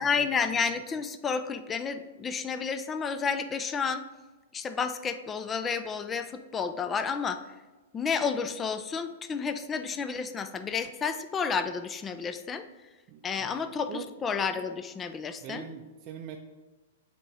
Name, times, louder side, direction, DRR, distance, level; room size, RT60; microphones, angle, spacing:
voice 1, 0.0-4.0 4.5-7.4 7.9-12.6 13.2-15.6, left 5 dB, 20° left, 9 dB, 0.4 m, -31 dB
voice 2, 13.1-13.5 13.9-14.1 15.4-16.4, right 8 dB, 40° right, 2 dB, 0.5 m, -42 dB
8.2 x 2.9 x 4.8 m, 1.2 s
hypercardioid pair, 115°, 0 cm